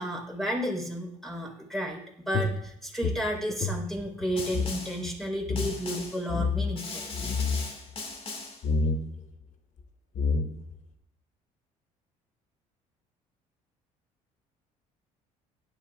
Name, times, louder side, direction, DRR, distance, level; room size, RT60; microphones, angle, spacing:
voice 1, 0.0-7.1, equal, ahead, 0 dB, 4.3 m, -32 dB
sound 1, 2.3-4.8 5.0-5.1 5.4-5.7 6.3-6.8 7.1-7.7 8.6-9.0 9.8-9.9 10.1-10.8, left 4 dB, 55° left, 1.2 m, -28 dB
Snare drum, 4.4-5.1 5.6-6.3 6.8-8.7, left 3 dB, 40° left, 2.1 m, -39 dB
16.5 x 11.0 x 2.5 m, 0.70 s
supercardioid pair, 80°, 15 cm